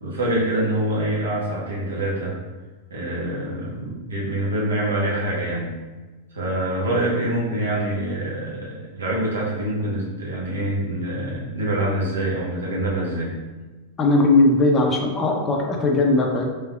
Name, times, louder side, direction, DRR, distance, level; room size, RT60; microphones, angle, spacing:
voice 1, 0.0-2.4 2.9-5.7 6.3-13.3, right 1 dB, 70° right, -5 dB, 0.8 m, -25 dB
voice 2, 14.0-16.4, left 2 dB, 25° left, 1 dB, 0.4 m, -18 dB
3.3 x 2.8 x 2.2 m, 1.3 s
figure-of-eight pair, 90°, 0 cm